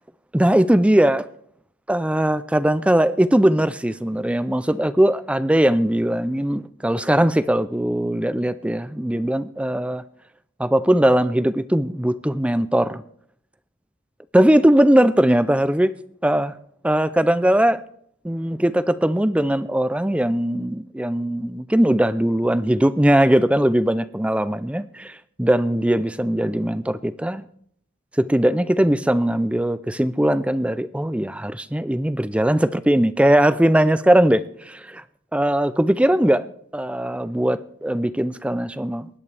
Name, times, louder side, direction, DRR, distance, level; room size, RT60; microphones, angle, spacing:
voice 1, 0.3-1.3 1.9-10.0 10.6-13.0 14.3-15.9 16.2-16.5 16.8-17.8 18.2-27.5 28.2-35.0 35.3-36.4 36.7-39.1, right 1 dB, 5° right, 14 dB, 0.4 m, -20 dB
23.0 x 11.0 x 3.4 m, 0.66 s
head